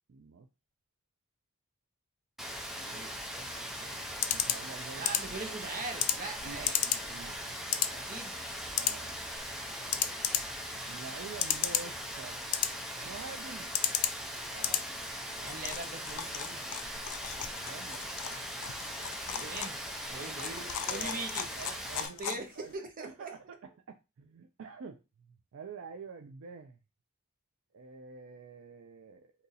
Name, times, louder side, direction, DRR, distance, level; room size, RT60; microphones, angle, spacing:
voice 1, 0.1-0.5 2.7-3.0 3.4-5.3 6.4-7.4 8.8-9.2 10.9-12.4 13.0-13.7 15.2-15.5 17.5-18.0 20.1-21.2 21.6-22.7 23.0-26.8 27.7-29.3, right 5 dB, 60° right, 0.4 m, -48 dB
Rain, 2.4-22.1, equal, ahead, 0.5 m, -40 dB
voice 2, 2.9-3.5 5.0-6.8 7.9-8.7 9.9-10.5 14.5-14.8 15.4-16.7 19.2-19.8 20.1-21.5 22.0-22.5 22.7-23.3, right 3 dB, 40° right, 0.8 m, -42 dB
sound 1, 3.4-22.7, left 10 dB, 75° left, 0.4 m, -36 dB
2.8 x 2.6 x 3.9 m
head